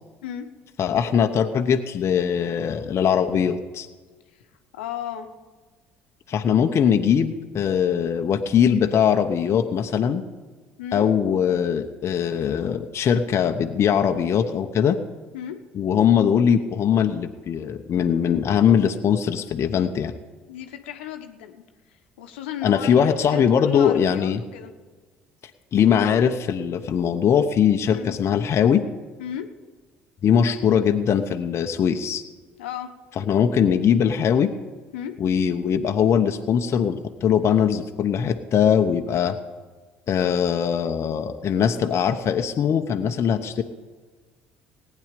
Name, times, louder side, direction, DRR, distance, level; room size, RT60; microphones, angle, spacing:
voice 1, 0.8-3.9 6.3-10.2 10.9-15.0 15.7-20.1 22.6-24.4 25.7-28.8 30.2-32.2 33.2-34.5 35.2-39.4 40.1-43.6, left 8 dB, 45° left, 6 dB, 0.9 m, -21 dB
voice 2, 4.7-5.3 10.8-11.1 15.3-15.6 20.5-21.6 21.9-24.7 27.8-28.2 29.2-29.5 32.6-32.9 34.9-35.1, left 10 dB, 75° left, 6 dB, 1.1 m, -34 dB
19.0 x 9.5 x 5.3 m, 1.4 s
figure-of-eight pair, 55°, 6 cm